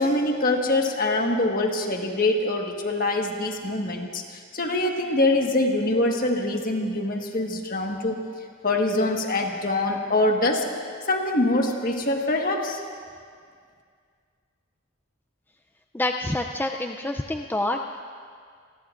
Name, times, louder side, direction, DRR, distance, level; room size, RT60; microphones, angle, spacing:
voice 1, 0.0-8.2 8.6-10.7 11.1-12.8, left 2 dB, 45° left, 2 dB, 1.5 m, -24 dB
voice 2, 15.9-17.8, left 1 dB, 10° left, 3 dB, 0.4 m, -27 dB
28.0 x 20.0 x 2.5 m, 2.1 s
head